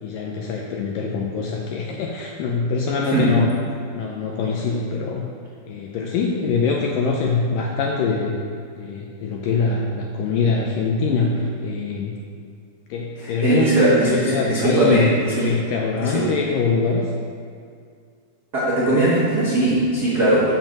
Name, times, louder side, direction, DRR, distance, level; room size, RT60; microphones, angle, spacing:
voice 1, 0.0-3.5 3.9-5.2 5.7-8.3 8.8-12.2 12.9-17.1, left 4 dB, 80° left, -1 dB, 2.0 m, -23 dB
voice 2, 13.2-15.5 16.0-16.3 18.5-20.5, right 1 dB, 90° right, -9 dB, 0.8 m, -19 dB
7.2 x 5.6 x 7.3 m, 2.3 s
omnidirectional pair, 4.6 m